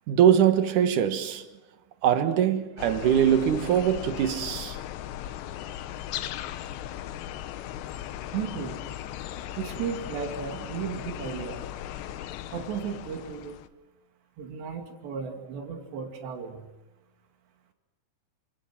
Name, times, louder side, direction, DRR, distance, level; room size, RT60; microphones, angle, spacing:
voice 1, 0.1-1.5 2.0-4.8, right 9 dB, 60° right, 2.6 m, -22 dB
sound 1, 2.8-13.7, left 12 dB, 85° left, 3.2 m, -37 dB
voice 2, 8.3-8.8 9.6-11.6 12.5-13.6 14.4-16.7, right 7 dB, 85° right, 4.8 m, -35 dB
29.0 x 27.0 x 6.1 m
omnidirectional pair, 4.8 m